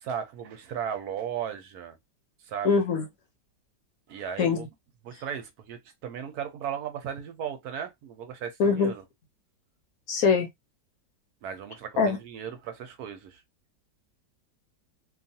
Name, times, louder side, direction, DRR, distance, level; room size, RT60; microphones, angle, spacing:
voice 1, 0.0-2.0 2.5-2.8 4.1-4.7 5.0-9.0 11.4-13.4, right 8 dB, 70° right, 1.0 m, -36 dB
voice 2, 2.6-3.0 4.4-4.7 8.6-8.9 10.1-10.5 12.0-12.2, left 5 dB, 65° left, 1.0 m, -23 dB
2.8 x 2.3 x 2.6 m
omnidirectional pair, 1.8 m